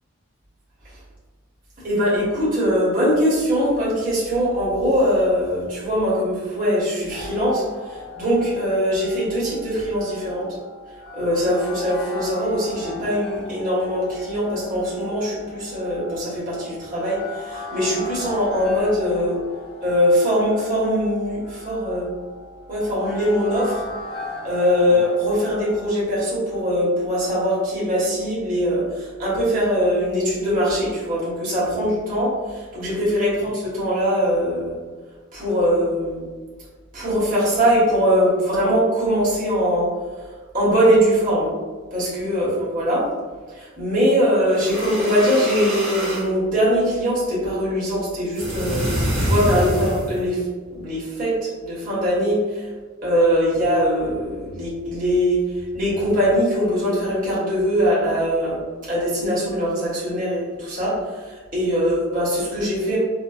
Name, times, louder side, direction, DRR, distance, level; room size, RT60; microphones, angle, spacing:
voice 1, 1.8-10.4 11.1-19.4 19.8-22.1 22.7-23.8 24.4-34.8 35.3-36.2 36.9-39.9 40.5-41.5 41.9-43.0 43.5-50.4 50.7-52.7 53.0-55.4 55.7-63.0, equal, 40° right, -8 dB, 1.1 m, -21 dB
sound 1, 7.1-25.9, left 2 dB, 85° left, 1.1 m, -38 dB
sound 2, 44.5-46.3 48.3-50.2, equal, 65° right, 0.9 m, -25 dB
4.3 x 2.1 x 2.4 m, 1.4 s
head